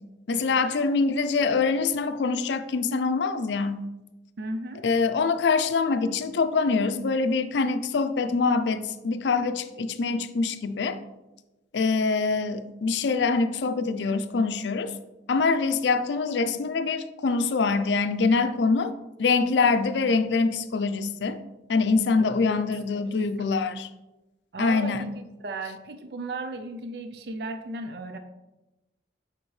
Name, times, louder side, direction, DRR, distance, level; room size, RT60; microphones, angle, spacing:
voice 1, 0.3-3.8 4.8-11.0 11.7-14.9 15.3-18.9 19.2-21.4 21.7-23.9 24.6-25.0, left 4 dB, 85° left, 10 dB, 0.5 m, -24 dB
voice 2, 4.4-4.8 22.2-22.7 24.5-28.2, right 2 dB, 65° right, 7 dB, 0.4 m, -35 dB
7.2 x 5.1 x 3.2 m, 1.0 s
head